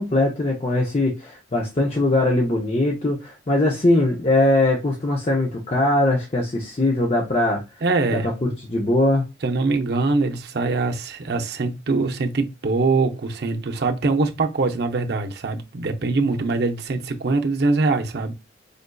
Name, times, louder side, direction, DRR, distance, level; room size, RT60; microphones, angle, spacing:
voice 1, 0.0-7.6 8.1-9.2, left 1 dB, 30° left, 0.5 m, -21 dB
voice 2, 7.8-8.3 9.4-18.3, right 3 dB, 55° right, 0.5 m, -23 dB
5.0 x 2.5 x 2.2 m
head